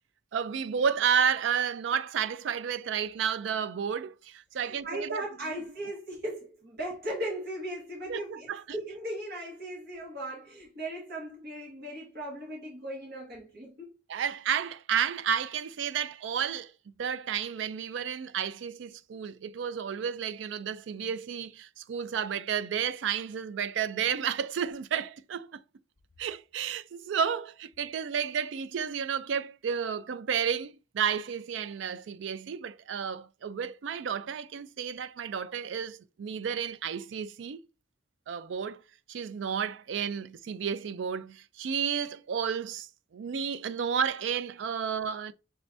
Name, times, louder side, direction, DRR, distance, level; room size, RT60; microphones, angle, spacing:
voice 1, 0.3-5.2 8.1-8.6 14.1-16.7 17.0-25.6 26.2-37.6 38.3-38.8 39.1-45.3, right 7 dB, 70° right, 0.4 m, -31 dB
voice 2, 4.5-13.9, right 1 dB, 50° right, 1.4 m, -38 dB
6.1 x 2.6 x 3.3 m
head